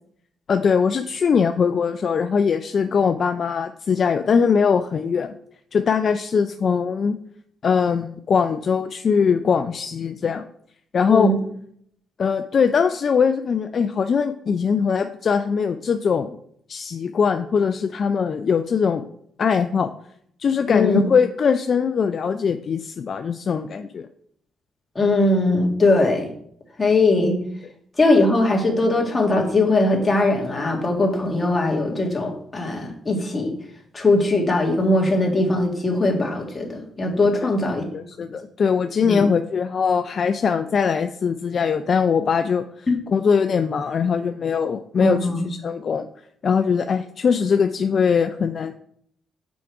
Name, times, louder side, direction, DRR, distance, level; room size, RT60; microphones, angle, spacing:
voice 1, 0.5-5.3 5.7-7.2 7.6-10.5 10.9-11.3 12.2-16.4 16.7-19.1 19.4-19.9 20.4-24.1 37.9-46.1 46.4-48.7, left 6 dB, 50° left, 8 dB, 0.4 m, -21 dB
voice 2, 11.1-11.4 20.7-21.1 25.0-26.3 26.8-27.3 28.0-33.5 33.9-37.9 39.0-39.2 45.0-45.5, left 2 dB, 25° left, 0 dB, 1.9 m, -20 dB
6.1 x 4.8 x 4.6 m, 0.67 s
cardioid pair, 90°, 0 cm